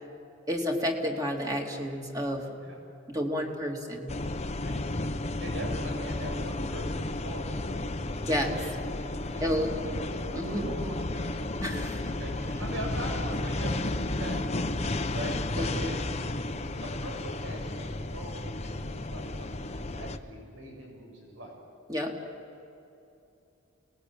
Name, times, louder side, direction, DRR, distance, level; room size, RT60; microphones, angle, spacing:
voice 1, 0.5-2.5 3.1-4.1 8.2-8.7 9.4-9.7 10.3-10.7 11.6-12.1 15.6-15.8 21.9-22.1, equal, 20° right, 1 dB, 2.7 m, -30 dB
sound 1, 4.1-20.2, left 2 dB, 35° left, 1.0 m, -33 dB
voice 2, 5.4-7.9 9.2-10.0 10.3-11.6 12.0-14.8 15.1-16.0 16.8-21.5, equal, 65° right, 0 dB, 7.1 m, -41 dB
29.0 x 20.0 x 8.7 m, 2.8 s
head